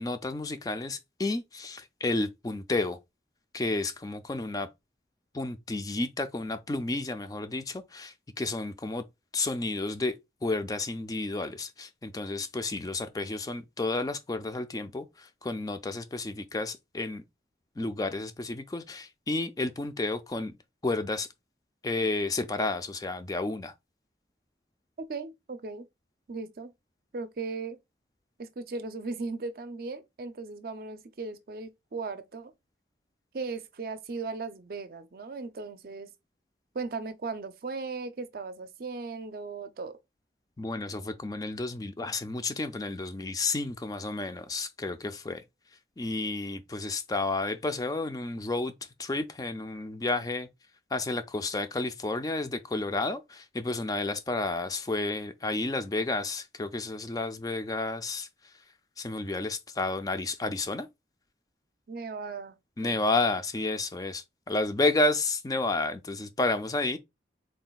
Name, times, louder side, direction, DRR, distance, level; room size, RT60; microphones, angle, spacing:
voice 1, 0.0-3.0 3.5-4.7 5.3-9.0 9.3-10.1 10.4-17.2 17.8-20.5 20.8-21.3 21.8-23.7 40.6-45.4 46.0-48.7 49.0-50.5 50.9-58.3 59.0-60.9 62.8-67.0, left 2 dB, 20° left, 0.3 m, -31 dB
voice 2, 25.0-25.9 26.3-26.7 27.1-27.8 28.4-32.5 33.3-36.1 36.7-40.0 61.9-62.6 62.8-63.0, right 4 dB, 55° right, 0.5 m, -37 dB
3.7 x 2.3 x 4.0 m
head